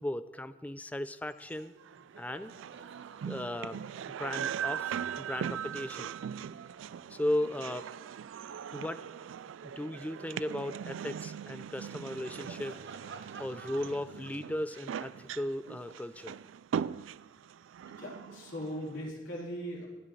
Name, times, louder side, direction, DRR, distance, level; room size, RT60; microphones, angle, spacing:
voice 1, 0.0-1.7 2.2-2.5 3.2-3.8 4.2-6.1 7.1-7.9 8.7-9.1 9.6-12.8 13.4-16.4, left 1 dB, 10° left, 12 dB, 0.4 m, -36 dB
Laughter, 1.4-1.6 1.8-8.6 9.1-17.2, right 4 dB, 65° right, 0.8 m, -55 dB
sound 1, 1.5-19.1, right 8 dB, 85° right, 0.3 m, -40 dB
voice 2, 17.8-19.9, equal, 75° left, -4 dB, 4.2 m, -40 dB
23.0 x 10.0 x 3.3 m, 1.1 s
head